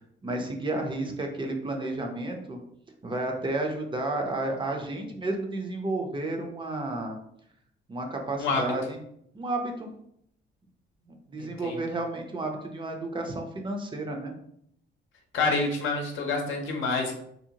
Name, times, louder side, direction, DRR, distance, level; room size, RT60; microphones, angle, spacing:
voice 1, 0.2-2.6 3.0-7.2 7.9-9.0 9.3-9.9 11.3-14.3, right 2 dB, 25° right, 2 dB, 0.5 m, -31 dB
voice 2, 8.4-8.7 11.4-11.8 15.3-17.1, left 3 dB, 75° left, 2 dB, 0.6 m, -28 dB
2.7 x 2.1 x 2.7 m, 0.72 s
cardioid pair, 90°, 20 cm